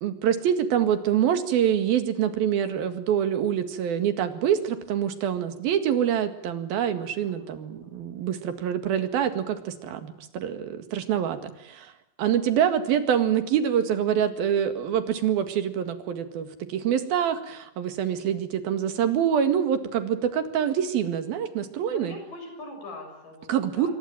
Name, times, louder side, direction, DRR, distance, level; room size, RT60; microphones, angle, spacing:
voice 1, 0.0-11.9 12.2-22.1 23.5-23.9, right 9 dB, 80° right, 9 dB, 3.8 m, -25 dB
voice 2, 21.8-23.9, left 1 dB, 65° left, 4 dB, 8.3 m, -42 dB
27.0 x 23.5 x 9.0 m, 0.80 s
omnidirectional pair, 4.2 m